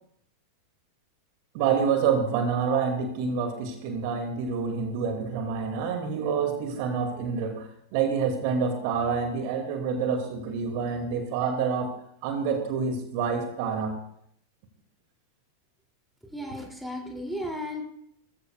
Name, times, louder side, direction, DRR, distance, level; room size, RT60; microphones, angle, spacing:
voice 1, 1.5-11.9 12.2-14.0, right 6 dB, 45° right, 4 dB, 2.2 m, -27 dB
voice 2, 16.3-17.8, left 1 dB, ahead, 0 dB, 2.7 m, -34 dB
19.5 x 14.5 x 2.3 m, 0.70 s
figure-of-eight pair, 90°, 0 cm